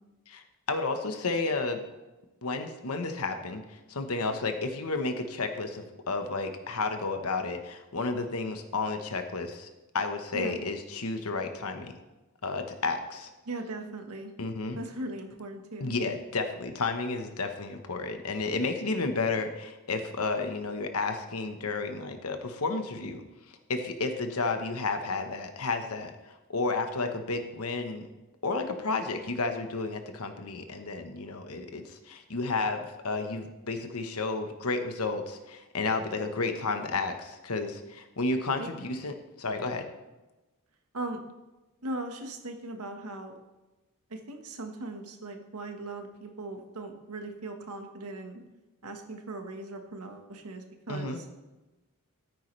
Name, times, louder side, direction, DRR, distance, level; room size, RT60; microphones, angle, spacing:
voice 1, 0.3-1.8 2.4-9.7 9.9-11.9 12.4-13.3 14.4-14.8 15.8-28.1 28.4-39.9 50.9-51.2, left 3 dB, 80° left, 6 dB, 1.1 m, -32 dB
voice 2, 13.4-14.3 14.7-16.0 38.6-38.7 40.9-41.2 41.8-43.4 44.1-48.4 48.8-51.2, right 2 dB, 85° right, 4 dB, 1.5 m, -39 dB
13.5 x 9.3 x 3.3 m, 1.1 s
head